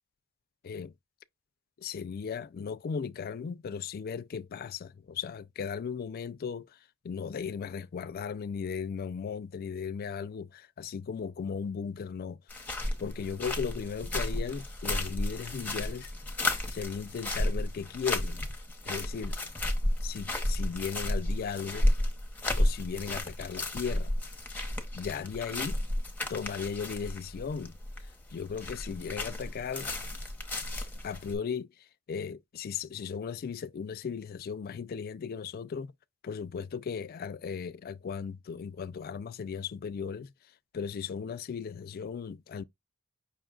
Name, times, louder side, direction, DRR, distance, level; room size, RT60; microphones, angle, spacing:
voice 1, 1.8-6.8 7.0-12.4 13.0-16.1 16.7-18.4 18.8-19.4 20.0-21.9 22.6-24.1 24.9-25.8 26.3-27.7 28.0-29.9 31.0-35.9 36.2-40.3 40.7-42.6, left 6 dB, 45° left, 0.3 m, -36 dB
sound 1, 12.5-31.4, left 1 dB, 10° left, 0.8 m, -33 dB
5.4 x 2.3 x 3.7 m
head